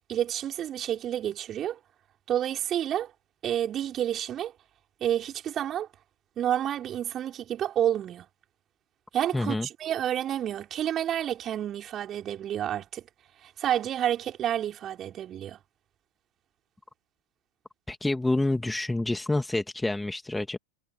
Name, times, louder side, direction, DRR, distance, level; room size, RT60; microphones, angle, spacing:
voice 1, 0.0-1.8 2.3-3.1 3.4-4.5 5.0-5.9 6.4-8.3 9.1-13.0 13.4-15.6, right 10 dB, 30° right, 5.3 m, -29 dB
voice 2, 9.3-9.7 17.9-20.6, left 2 dB, 5° left, 2.7 m, -28 dB
figure-of-eight pair, 90°, 0 cm